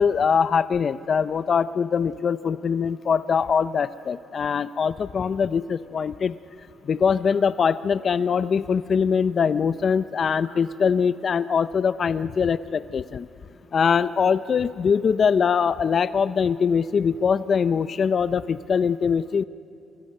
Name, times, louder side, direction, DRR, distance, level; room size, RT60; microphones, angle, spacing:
voice 1, 0.0-6.4 6.8-13.3 13.7-19.4, left 6 dB, 50° left, 14 dB, 0.6 m, -22 dB
sound 1, 7.1-7.5 10.3-10.6, left 2 dB, 90° left, 4.7 m, -52 dB
29.0 x 22.5 x 6.6 m, 2.9 s
cardioid pair, 90°, 0 cm